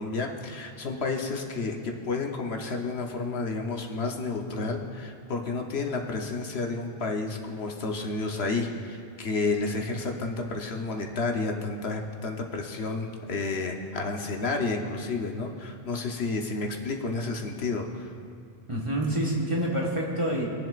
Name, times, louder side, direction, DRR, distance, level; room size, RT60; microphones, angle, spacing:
voice 1, 0.0-18.1, left 3 dB, 75° left, 2 dB, 1.1 m, -31 dB
voice 2, 18.7-20.5, right 1 dB, 30° right, -3 dB, 1.5 m, -27 dB
21.0 x 7.7 x 2.5 m, 2.3 s
omnidirectional pair, 1.1 m